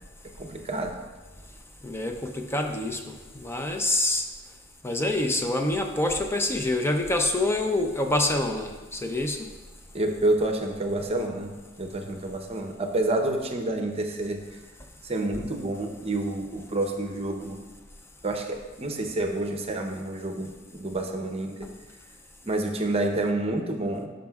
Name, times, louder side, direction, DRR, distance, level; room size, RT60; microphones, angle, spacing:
voice 1, 0.4-0.9 9.9-14.4 15.0-17.6 18.2-21.7 22.4-24.1, right 2 dB, 30° right, 4 dB, 0.7 m, -28 dB
voice 2, 1.8-4.2 4.8-9.4, left 1 dB, 10° left, 4 dB, 0.5 m, -26 dB
13.0 x 5.2 x 2.3 m, 1.2 s
head